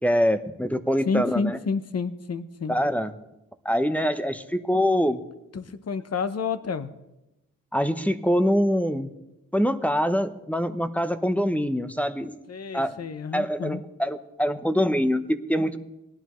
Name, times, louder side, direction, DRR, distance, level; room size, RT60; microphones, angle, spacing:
voice 1, 0.0-1.6 2.7-3.1 3.6-5.2 7.7-9.1 9.5-12.3 12.7-13.0 13.3-15.8, equal, 5° left, 11 dB, 0.7 m, -24 dB
voice 2, 1.1-2.8 5.5-6.9 12.5-13.8, left 5 dB, 50° left, 12 dB, 0.8 m, -29 dB
18.5 x 11.5 x 3.1 m, 0.95 s
cardioid pair, 60°, 32 cm